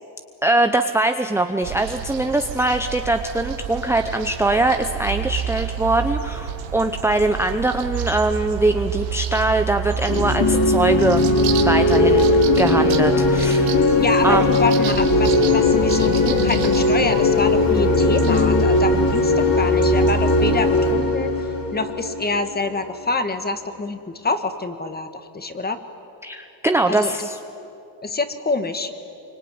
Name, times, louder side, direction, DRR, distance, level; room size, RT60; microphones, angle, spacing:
voice 1, 0.4-11.2 11.6-12.3 12.6-13.9 14.2-14.4 26.2-27.4, right 2 dB, 5° right, 6 dB, 0.7 m, -22 dB
sound 1, 1.6-20.9, right 8 dB, 90° right, 2.4 m, -30 dB
sound 2, 9.9-22.6, left 1 dB, 50° left, 5.5 m, -19 dB
sound 3, 10.1-18.6, left 9 dB, 85° left, 2.8 m, -24 dB
voice 2, 13.9-21.3 21.7-25.8 26.9-27.3 28.0-28.9, left 3 dB, 20° left, 9 dB, 1.7 m, -26 dB
25.5 x 24.5 x 9.6 m, 2.8 s
cardioid pair, 130°, 45 cm